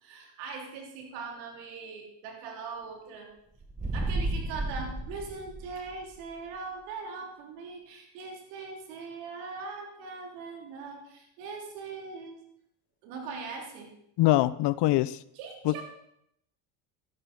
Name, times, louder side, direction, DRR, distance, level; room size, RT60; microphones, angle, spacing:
voice 1, 0.0-3.3 3.9-12.4 13.0-13.9 15.4-15.8, right 4 dB, 85° right, 2 dB, 3.5 m, -41 dB
sound 1, 3.6-6.1, right 2 dB, 15° right, 1.4 m, -32 dB
voice 2, 14.2-15.2 15.6-15.8, left 16 dB, 55° left, 18 dB, 0.7 m, -23 dB
13.0 x 11.0 x 5.4 m, 0.75 s
supercardioid pair, 90°, 49 cm